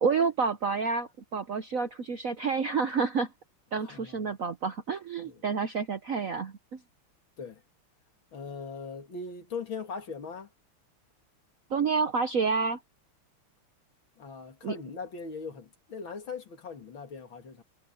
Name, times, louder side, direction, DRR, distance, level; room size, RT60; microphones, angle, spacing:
voice 1, 0.0-3.3 3.7-6.5 11.7-12.8 14.6-14.7, right 5 dB, 55° right, 1.0 m, -29 dB
voice 2, 3.8-4.3 5.2-5.4 7.4-7.6 8.3-10.5 14.2-17.6, left 5 dB, 60° left, 3.1 m, -40 dB
omnidirectional pair, 2.4 m